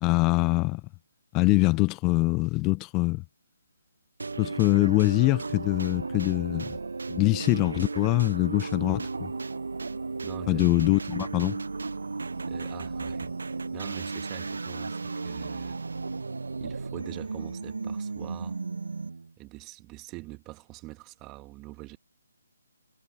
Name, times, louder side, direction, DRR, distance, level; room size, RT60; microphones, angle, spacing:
voice 1, 0.0-0.8 1.3-3.2 4.4-6.8 7.1-9.3 10.5-11.6, left 24 dB, 20° left, 0.5 m, -24 dB
sound 1, 4.2-19.3, right 3 dB, 75° right, 0.8 m, -34 dB
voice 2, 10.2-10.6 12.4-15.8 16.6-18.6 19.4-22.0, right 22 dB, 20° right, 2.0 m, -44 dB
figure-of-eight pair, 150°, 0 cm